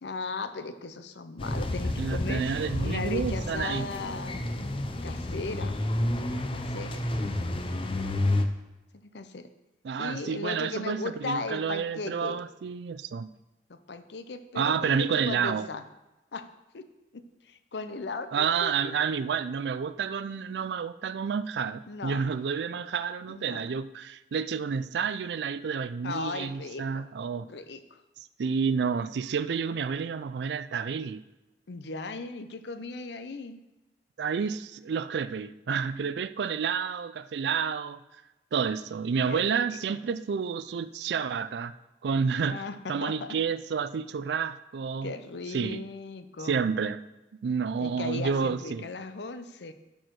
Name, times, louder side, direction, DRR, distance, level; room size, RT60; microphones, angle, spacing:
voice 1, 0.0-2.4 2.8-4.5 5.0-6.1 6.5-7.0 8.9-9.5 10.0-12.4 13.7-15.8 16.3-16.5 16.7-16.9 17.1-19.1 21.9-22.3 23.3-23.7 26.0-27.1 27.4-28.0 31.7-33.6 39.3-40.0 42.4-43.4 45.0-46.7 47.8-49.7, left 3 dB, 70° left, 10 dB, 0.6 m, -37 dB
sound 1, 1.4-8.4, left 1 dB, 30° left, 0.6 m, -30 dB
voice 2, 2.0-3.9 9.8-13.3 14.6-15.7 18.3-27.5 28.4-31.2 34.2-38.0 38.5-41.7 42.0-42.6 42.9-45.1 45.5-45.8 46.4-47.0 47.4-48.9, right 6 dB, 70° right, 14 dB, 0.4 m, -30 dB
12.0 x 4.6 x 4.7 m, 1.0 s
head